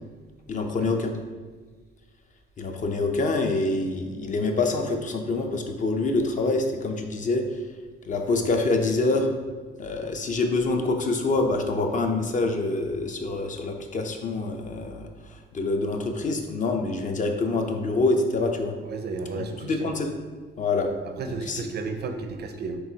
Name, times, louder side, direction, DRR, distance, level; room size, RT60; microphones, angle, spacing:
voice 1, 0.5-1.1 2.6-7.4 8.1-9.3 9.8-18.7 19.6-20.1 20.6-20.9 21.3-21.6, left 3 dB, 40° left, 4 dB, 0.5 m, -26 dB
voice 2, 18.8-20.0 21.0-22.8, right 4 dB, 55° right, 7 dB, 0.5 m, -33 dB
4.6 x 3.4 x 2.7 m, 1.4 s
cardioid pair, 90°, 20 cm